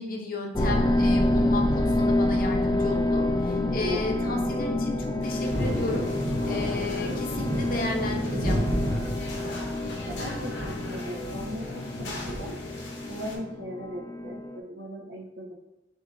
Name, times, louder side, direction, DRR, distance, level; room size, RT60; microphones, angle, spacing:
voice 1, 0.0-6.0 6.4-8.6, left 2 dB, 50° left, 2 dB, 0.7 m, -33 dB
sound 1, 0.5-14.6, left 1 dB, 25° left, 0.3 m, -28 dB
voice 2, 3.8-4.5 7.0-7.4 10.0-12.5 13.1-15.5, equal, 80° right, 0 dB, 0.9 m, -38 dB
sound 2, 5.2-13.4, left 2 dB, 85° left, 1.0 m, -41 dB
Thunder, 5.5-12.5, equal, 50° right, 1.3 m, -32 dB
6.9 x 2.7 x 2.5 m, 0.96 s
head